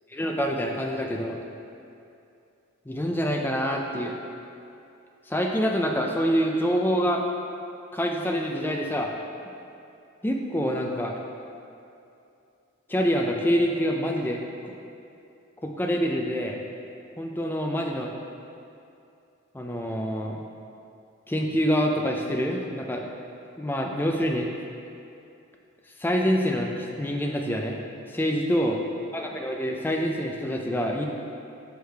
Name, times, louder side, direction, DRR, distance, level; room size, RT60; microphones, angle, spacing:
voice 1, 0.1-1.4 2.9-4.2 5.3-7.2 7.9-9.1 10.2-11.1 12.9-14.7 15.6-16.6 17.2-18.1 19.5-20.4 21.3-23.1 23.6-24.5 26.0-27.8 28.1-28.8 29.1-31.1, equal, 10° left, 1 dB, 0.4 m, -26 dB
6.4 x 4.8 x 3.4 m, 2.7 s
head